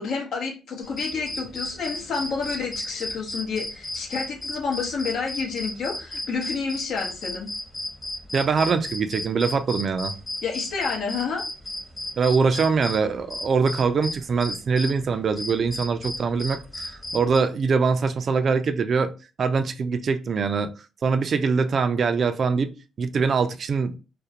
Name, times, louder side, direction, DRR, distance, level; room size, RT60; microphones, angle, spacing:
voice 1, 0.0-7.5 10.4-11.4, left 5 dB, 70° left, 0.8 m, -29 dB
sound 1, 0.8-14.9 15.4-17.4, left 1 dB, 10° left, 0.8 m, -34 dB
voice 2, 8.3-10.1 12.2-19.1 19.4-20.7 21.0-24.0, right 5 dB, 50° right, 0.3 m, -23 dB
2.4 x 2.1 x 2.7 m
cardioid pair, 90°, 0 cm